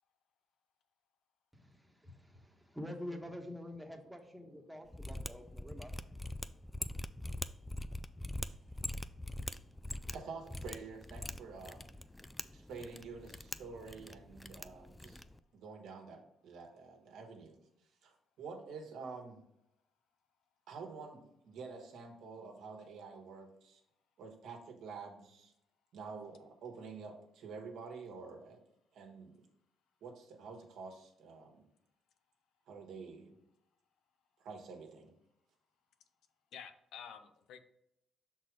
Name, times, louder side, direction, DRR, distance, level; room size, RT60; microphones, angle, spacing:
voice 1, 1.5-5.9, left 1 dB, 5° right, 4 dB, 1.1 m, -47 dB
voice 2, 3.9-4.3 6.5-6.6 36.5-37.6, left 8 dB, 80° left, 9 dB, 0.6 m, -51 dB
Mechanisms, 4.9-15.4, left 1 dB, 10° left, 0.3 m, -43 dB
voice 3, 10.1-11.9 12.5-15.2 15.5-17.6 18.0-19.4 20.7-23.8 24.2-25.5 25.9-28.6 28.9-29.4 30.0-31.6 32.7-33.3 34.4-35.1, right 4 dB, 80° right, 3 dB, 1.4 m, -48 dB
6.0 x 4.1 x 4.8 m, 0.78 s
cardioid pair, 90°, 0 cm